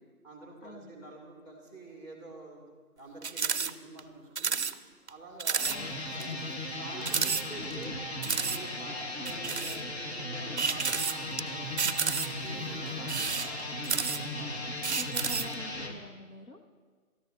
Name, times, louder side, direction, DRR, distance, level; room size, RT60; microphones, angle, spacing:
voice 1, 0.2-2.6 3.0-4.6 5.1-6.4 6.7-8.0 8.3-11.7 12.2-15.0, right 2 dB, 10° left, -1 dB, 2.0 m, -48 dB
sound 1, 3.2-3.7 4.0-4.1 4.4-4.7 5.1-5.2 5.4-5.8 6.2-6.3 7.0-7.8 8.2-8.6 9.3-9.8 10.6-11.4 11.8-12.5 13.0-14.4 14.8-15.5, right 5 dB, 50° right, 0.5 m, -30 dB
sound 2, 5.6-15.9, left 1 dB, 45° left, 1.6 m, -37 dB
voice 2, 5.7-6.0 12.5-13.1 14.8-16.6, left 1 dB, 70° left, 0 dB, 2.1 m, -47 dB
23.5 x 13.5 x 2.7 m, 1.5 s
figure-of-eight pair, 160°, 45 cm